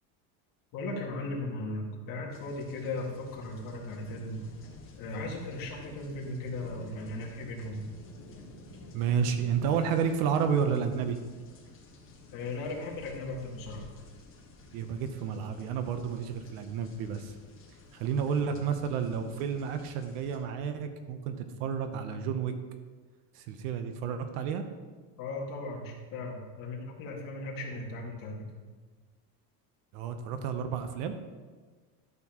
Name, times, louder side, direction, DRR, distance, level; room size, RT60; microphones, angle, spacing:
voice 1, 0.7-4.4 5.0-7.8 12.3-13.9 18.4-18.5 25.2-28.5, left 2 dB, 45° left, -2 dB, 2.0 m, -37 dB
sound 1, 2.3-20.4, left 3 dB, 25° left, 1.5 m, -52 dB
voice 2, 8.9-11.2 14.7-17.3 17.9-22.5 23.3-24.7 29.9-31.1, right 7 dB, 70° right, 8 dB, 1.0 m, -31 dB
12.0 x 6.9 x 3.0 m, 1.4 s
cardioid pair, 150°, 47 cm